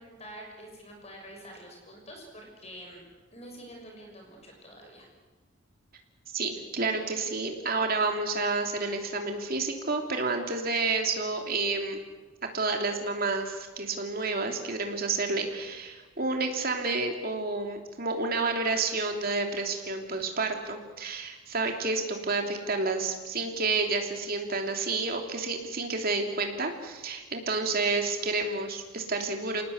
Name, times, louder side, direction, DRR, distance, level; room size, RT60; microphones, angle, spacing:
voice 1, 0.0-3.0 3.3-5.1, equal, 30° left, 1 dB, 6.4 m, -47 dB
voice 2, 6.3-12.0 12.5-29.6, right 3 dB, 45° right, 3 dB, 3.1 m, -30 dB
27.5 x 19.0 x 8.2 m, 1.3 s
head